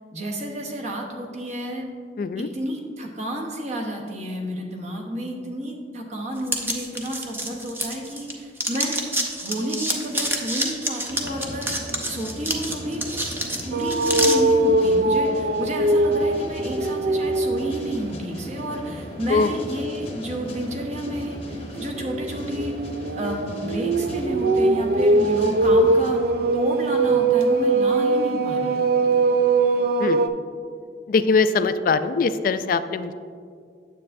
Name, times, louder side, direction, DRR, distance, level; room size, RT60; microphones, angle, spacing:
voice 1, 0.1-1.9 2.4-9.0 9.4-11.7 12.1-13.0 13.6-22.7 23.1-26.2 26.5-28.8, equal, 40° right, 1 dB, 1.0 m, -31 dB
voice 2, 2.2-2.5 19.3-19.5 30.0-30.3 31.1-33.1, left 4 dB, 50° left, 12 dB, 0.3 m, -22 dB
sound 1, 6.5-8.3 8.6-14.4, right 1 dB, 15° right, 0.6 m, -27 dB
sound 2, 11.1-26.1, equal, 35° left, 0.8 m, -38 dB
sound 3, 13.7-17.9 18.3-18.6 21.1-30.3, right 2 dB, 60° right, 0.4 m, -21 dB
9.4 x 7.5 x 2.6 m, 2.2 s
head